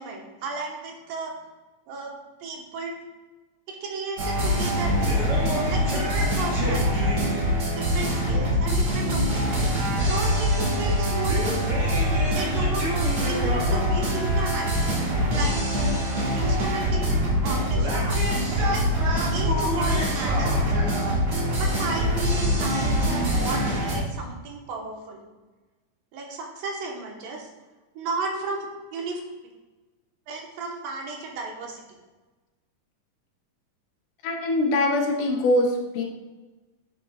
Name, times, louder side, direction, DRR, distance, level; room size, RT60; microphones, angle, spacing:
voice 1, 0.0-1.4 1.9-3.0 3.7-5.1 5.7-7.2 7.6-11.6 12.3-12.9 13.2-15.0 15.3-16.0 16.3-18.2 18.7-18.8 19.3-20.9 21.6-25.2 26.1-27.5 28.0-29.2 30.3-31.8, right 3 dB, 80° right, 0 dB, 2.8 m, -34 dB
sound 1, 4.2-24.0, equal, 45° right, 2.6 m, -24 dB
voice 2, 34.2-36.0, left 1 dB, 75° left, 1 dB, 2.3 m, -23 dB
9.8 x 6.4 x 2.3 m, 1.2 s
omnidirectional pair, 3.9 m